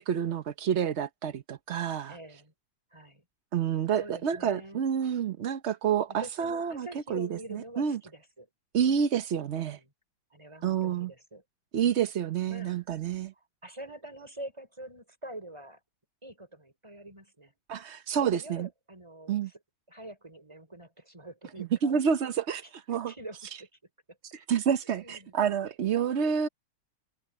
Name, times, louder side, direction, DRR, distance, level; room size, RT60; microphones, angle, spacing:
voice 1, 0.0-2.2 3.5-8.0 8.7-9.8 10.6-11.1 11.7-13.3 17.7-18.7 19.3-19.5 21.8-23.1 24.3-26.5, right 8 dB, 75° right, 0.6 m, -29 dB
voice 2, 2.1-2.5 2.9-3.2 4.0-4.8 6.2-8.5 9.4-9.9 10.3-11.4 12.5-12.8 13.6-15.8 16.2-17.5 18.2-19.6 19.9-21.9 23.1-23.7 24.1-24.2 24.8-25.3, right 1 dB, 15° right, 5.3 m, -45 dB
omnidirectional pair, 2.3 m